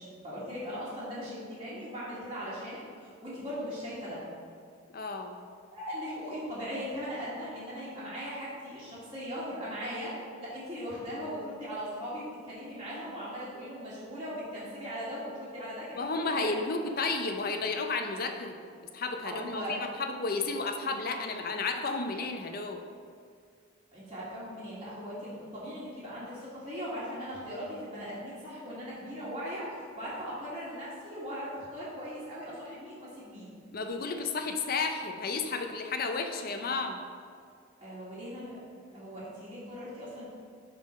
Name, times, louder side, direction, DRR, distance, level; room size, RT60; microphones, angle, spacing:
voice 1, 0.0-4.2 5.7-16.5 19.2-19.8 23.9-33.6 37.8-38.6 38.9-40.3, equal, 25° right, -12 dB, 1.7 m, -39 dB
voice 2, 4.9-5.4 15.9-18.6 18.9-22.8 33.7-37.0, left 3 dB, 45° left, 5 dB, 0.5 m, -32 dB
11.0 x 3.8 x 4.2 m, 2.2 s
head